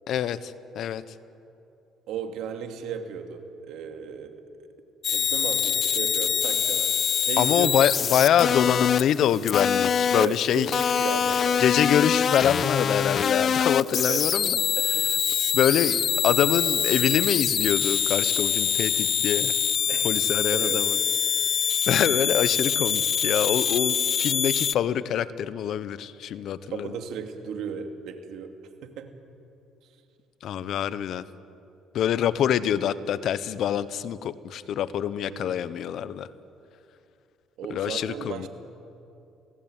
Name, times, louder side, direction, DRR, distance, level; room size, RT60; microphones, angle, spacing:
voice 1, 0.1-1.0 7.4-10.8 11.6-14.6 15.5-19.5 20.0-21.0 21.9-26.9 30.4-31.2 31.9-36.3 37.7-38.5, left 9 dB, 65° left, 15 dB, 1.0 m, -25 dB
voice 2, 2.1-4.4 5.1-6.9 7.2-7.9 10.1-11.8 13.9-14.3 14.8-15.1 15.4-15.6 19.9-20.1 20.5-20.9 26.7-28.5 28.8-29.1 35.2-35.5 37.6-38.5, right 7 dB, 70° right, 5 dB, 2.6 m, -35 dB
sound 1, 5.0-24.7, left 8 dB, 45° left, 0.5 m, -25 dB
27.5 x 18.0 x 9.1 m, 2.7 s
cardioid pair, 95°, 0 cm